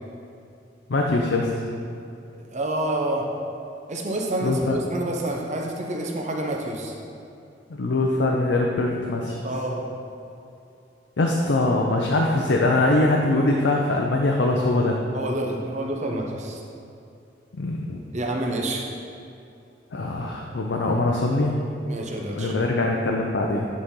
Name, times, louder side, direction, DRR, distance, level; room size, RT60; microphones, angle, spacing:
voice 1, 0.9-1.6 4.4-4.8 7.7-9.4 11.2-15.0 17.5-18.0 19.9-21.5 22.4-23.7, left 2 dB, 85° left, 0 dB, 0.6 m, -22 dB
voice 2, 2.5-3.3 3.9-6.9 9.4-9.9 15.1-16.6 18.1-18.9 21.9-22.6, right 1 dB, 40° right, 0 dB, 0.8 m, -28 dB
9.4 x 4.1 x 3.8 m, 2.7 s
head